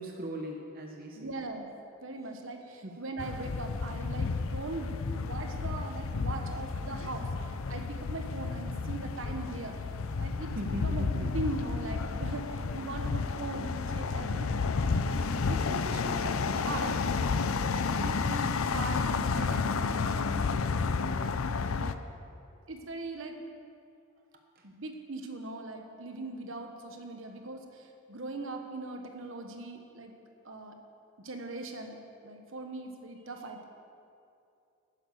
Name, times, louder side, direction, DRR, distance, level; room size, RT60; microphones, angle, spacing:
voice 1, 0.0-1.4 2.8-2.9 10.5-11.3 24.6-24.7, right 1 dB, 45° right, 1 dB, 0.9 m, -39 dB
voice 2, 1.2-1.7 2.0-7.3 7.7-9.8 10.2-20.4 21.2-21.3 21.8-22.0 22.7-23.4 24.6-30.1 30.4-30.8 31.2-33.6, right 2 dB, 65° right, 4 dB, 1.2 m, -40 dB
sound 1, 3.2-21.9, left 4 dB, 80° left, 0.5 m, -31 dB
10.5 x 9.9 x 6.8 m, 2.6 s
head